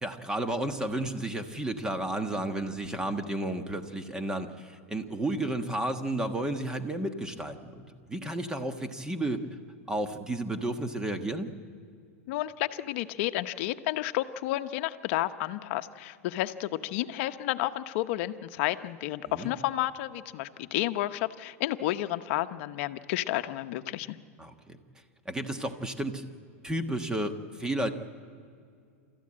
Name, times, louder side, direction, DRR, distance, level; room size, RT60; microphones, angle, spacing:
voice 1, 0.0-9.4 9.9-11.5 19.3-19.5 24.4-24.8 25.2-26.2 26.6-27.9, right 1 dB, 10° right, 7 dB, 1.4 m, -32 dB
voice 2, 12.3-24.2, left 15 dB, 55° left, 9 dB, 0.9 m, -31 dB
28.5 x 14.0 x 8.7 m, 2.3 s
supercardioid pair, 140°, 8 cm